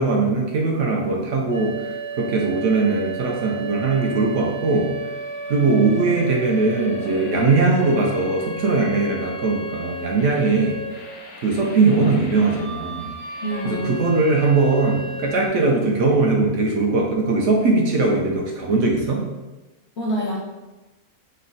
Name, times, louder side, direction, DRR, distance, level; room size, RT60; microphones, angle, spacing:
voice 1, 0.0-1.9 2.2-4.9 5.5-10.8 11.4-13.1 13.6-19.2, right 3 dB, 70° right, -1 dB, 0.8 m, -20 dB
sound 1, 1.5-15.5, right 2 dB, 85° left, 1.2 m, -33 dB
voice 2, 13.4-14.0 20.0-20.4, right 1 dB, 65° left, -2 dB, 0.7 m, -26 dB
3.2 x 2.1 x 3.7 m, 1.1 s
omnidirectional pair, 1.5 m